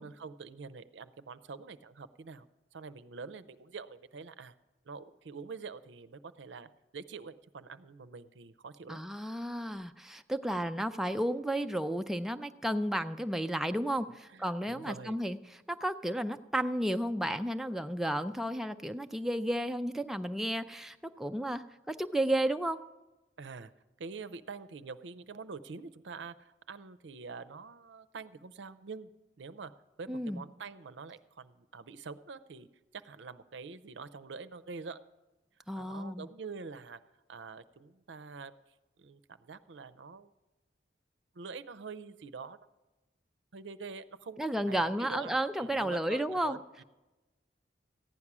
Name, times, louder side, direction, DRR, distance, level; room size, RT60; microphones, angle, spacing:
voice 1, 0.0-4.5 4.9-9.0 14.3-15.2 23.4-23.7 24.0-29.1 29.4-29.7 30.0-32.7 32.9-35.0 35.7-37.0 37.3-38.5 39.0-40.3 41.3-42.6 43.5-44.4 44.7-46.8, right 4 dB, 85° right, 14 dB, 0.6 m, -45 dB
voice 2, 8.9-22.8 30.1-30.4 35.7-36.3 44.4-46.6, right 1 dB, ahead, 7 dB, 0.3 m, -33 dB
15.0 x 9.8 x 6.0 m, 1.1 s
head